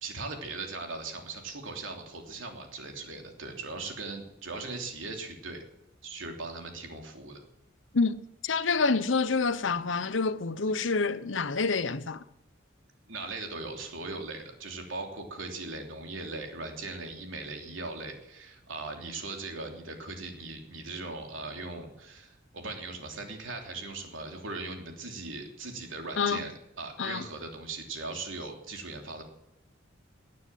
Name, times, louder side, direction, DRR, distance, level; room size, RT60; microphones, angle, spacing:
voice 1, 0.0-5.6 6.0-7.4 13.1-26.5 26.8-29.2, right 3 dB, 90° right, 3.2 m, -39 dB
voice 2, 7.9-12.2 26.2-26.4 27.0-27.2, left 4 dB, 80° left, 0.9 m, -27 dB
18.5 x 9.6 x 7.6 m
head